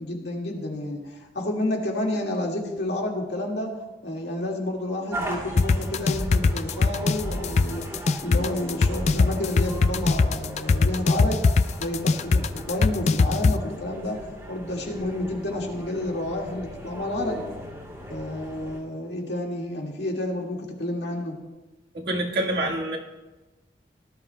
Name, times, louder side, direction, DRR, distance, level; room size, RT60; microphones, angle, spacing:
voice 1, 0.0-7.9 8.2-17.4 18.1-21.4, left 1 dB, 75° left, 0 dB, 1.9 m, -30 dB
sound 1, 5.1-18.8, equal, 15° right, 2.2 m, -37 dB
sound 2, 5.6-13.5, left 4 dB, 40° left, 0.3 m, -20 dB
voice 2, 21.9-23.0, right 1 dB, 60° right, -1 dB, 1.5 m, -26 dB
18.5 x 12.0 x 2.2 m, 1.1 s
head